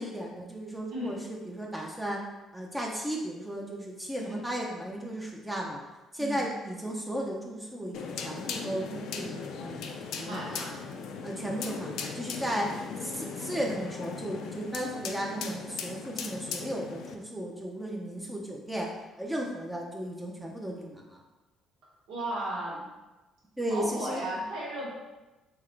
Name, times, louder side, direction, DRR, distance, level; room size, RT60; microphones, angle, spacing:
voice 1, 0.0-2.2 2.5-5.8 6.1-10.7 11.2-21.2 23.6-24.2, right 1 dB, 10° right, -1 dB, 0.6 m, -35 dB
sound 1, 7.9-17.1, left 5 dB, 75° left, 0.4 m, -38 dB
voice 2, 10.2-10.7 22.1-22.9 23.7-24.9, right 1 dB, 85° right, -7 dB, 1.5 m, -35 dB
3.6 x 2.9 x 3.2 m, 1.1 s
supercardioid pair, 85°, 0 cm